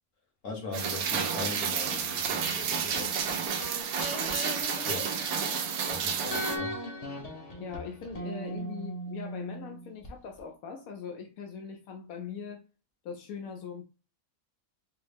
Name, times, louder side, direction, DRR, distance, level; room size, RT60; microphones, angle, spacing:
voice 1, 0.4-3.2 4.9-5.4 5.9-6.8, left 3 dB, 70° left, 1.6 m, -40 dB
Rain, 0.7-6.6, right 7 dB, 90° right, 1.0 m, -31 dB
sound 1, 2.9-5.9 6.3-10.1 10.4-10.5, equal, 35° left, 0.7 m, -39 dB
voice 2, 7.6-12.7 13.0-13.8, left 6 dB, 90° left, 1.1 m, -41 dB
4.6 x 2.0 x 3.3 m
omnidirectional pair, 1.4 m